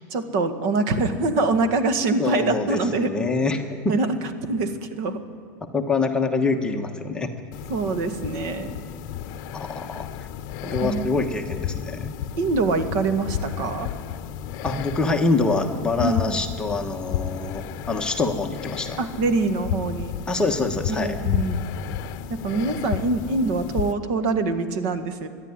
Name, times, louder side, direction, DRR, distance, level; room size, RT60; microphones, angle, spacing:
voice 1, 0.1-3.1 3.9-4.2 4.5-5.2 7.7-8.9 10.8-11.1 12.4-13.9 16.0-16.4 19.0-20.2 20.9-21.6 22.3-25.3, right 3 dB, 50° right, 9 dB, 1.8 m, -24 dB
voice 2, 2.2-4.0 5.7-7.3 9.5-10.1 10.6-12.1 14.6-19.0 20.3-21.2, left 3 dB, 10° left, 3 dB, 1.2 m, -25 dB
sound 1, 7.5-23.9, left 10 dB, 45° left, 0.9 m, -32 dB
25.0 x 11.0 x 9.8 m, 2.5 s
supercardioid pair, 160°, 10 cm